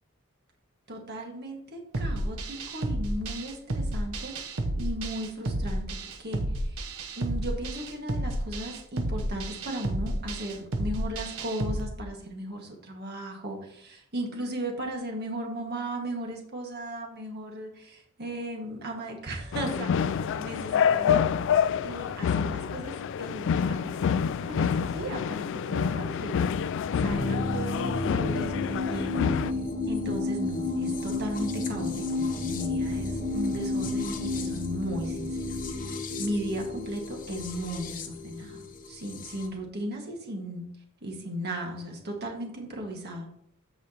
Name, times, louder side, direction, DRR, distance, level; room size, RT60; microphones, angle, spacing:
voice 1, 0.9-6.9 7.2-21.3 21.8-24.0 24.4-26.7 27.0-29.5 29.8-40.6 41.0-43.3, right 1 dB, 50° right, 1 dB, 1.8 m, -36 dB
sound 1, 1.9-11.8, right 1 dB, 80° right, 1.0 m, -31 dB
sound 2, 19.5-29.5, left 7 dB, 60° left, 0.3 m, -27 dB
sound 3, 27.0-39.5, left 2 dB, 40° left, 0.9 m, -31 dB
14.5 x 4.9 x 2.9 m, 0.69 s
head